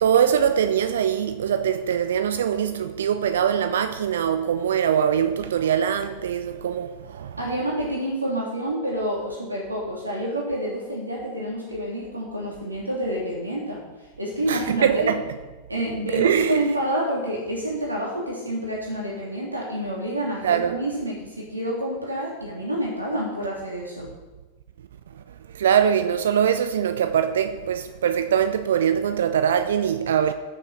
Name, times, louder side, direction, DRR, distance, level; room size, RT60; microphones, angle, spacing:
voice 1, 0.0-7.4 14.5-15.2 16.1-16.7 20.4-20.8 25.1-30.3, right 8 dB, 60° right, 0.8 m, -22 dB
voice 2, 7.4-13.8 14.2-15.1 15.7-24.1, right 1 dB, 80° right, 2.9 m, -28 dB
20.0 x 6.8 x 4.3 m
figure-of-eight pair, 90°, 0 cm